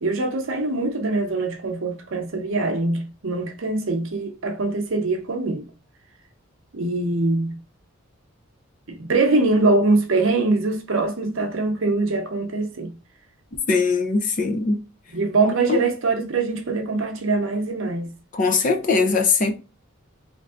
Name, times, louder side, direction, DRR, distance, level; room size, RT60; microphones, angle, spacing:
voice 1, 0.0-5.7 6.7-7.6 8.9-13.0 15.1-18.1, right 3 dB, 65° right, 0.7 m, -23 dB
voice 2, 13.7-14.8 15.4-15.8 18.3-19.5, left 4 dB, 35° left, 0.4 m, -21 dB
3.3 x 2.5 x 2.4 m
head